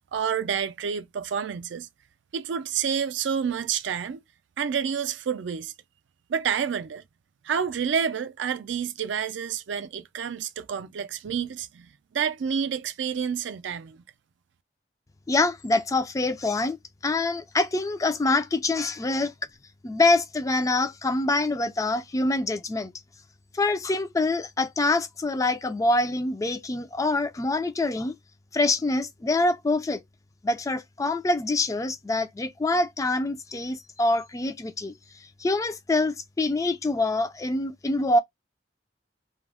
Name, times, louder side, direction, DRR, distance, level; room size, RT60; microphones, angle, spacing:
voice 1, 0.1-1.9 2.3-4.2 4.6-5.7 6.3-7.0 7.4-14.0, right 7 dB, 70° right, 0.4 m, -29 dB
voice 2, 15.3-16.8 17.0-19.3 19.8-22.9 23.5-28.2 28.5-30.0 30.4-34.9 35.4-38.2, left 2 dB, 20° left, 0.3 m, -25 dB
2.3 x 2.0 x 3.4 m
head